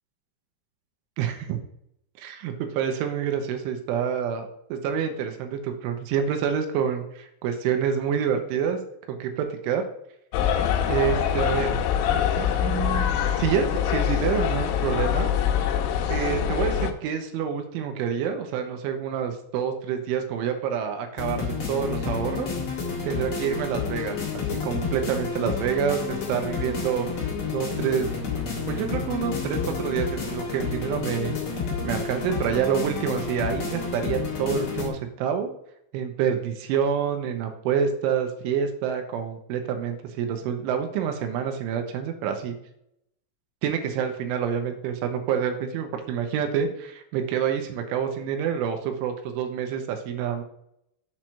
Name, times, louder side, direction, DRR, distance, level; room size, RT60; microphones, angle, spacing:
voice 1, 1.2-1.6 2.2-8.8 9.1-9.8 10.9-11.8 12.4-13.1 13.4-15.3 16.1-22.5 23.0-24.2 24.5-28.1 28.7-31.4 31.8-35.5 35.9-42.6 43.6-50.4, right 8 dB, 85° right, 6 dB, 3.3 m, -27 dB
sound 1, 10.3-16.9, left 9 dB, 85° left, 3.3 m, -24 dB
sound 2, 21.2-34.9, left 5 dB, 65° left, 1.3 m, -30 dB
7.6 x 4.6 x 5.6 m, 0.74 s
omnidirectional pair, 5.6 m